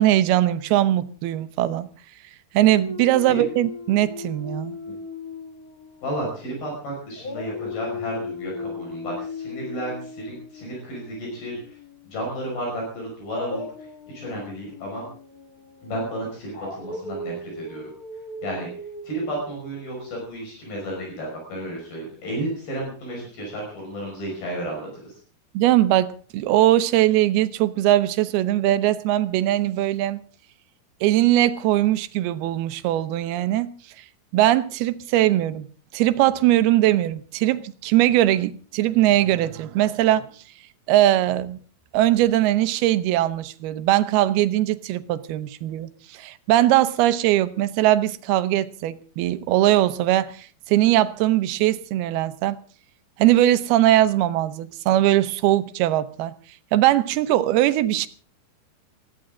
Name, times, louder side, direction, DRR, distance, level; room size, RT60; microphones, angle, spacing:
voice 1, 0.0-1.9 2.5-4.8 25.5-30.2 31.0-33.7 34.3-35.7 35.9-40.3 40.9-41.6 41.9-52.6 53.2-56.3 56.7-58.1, right 14 dB, 80° right, 2.8 m, -20 dB
Dog, 2.6-6.8 7.2-12.2 13.3-20.2, left 3 dB, 45° left, 1.2 m, -37 dB
voice 2, 6.0-11.8 12.0-13.7 14.1-15.1 15.8-17.9 18.4-18.7 19.0-25.1, right 1 dB, 70° left, 7.7 m, -32 dB
20.5 x 15.0 x 3.8 m
omnidirectional pair, 4.5 m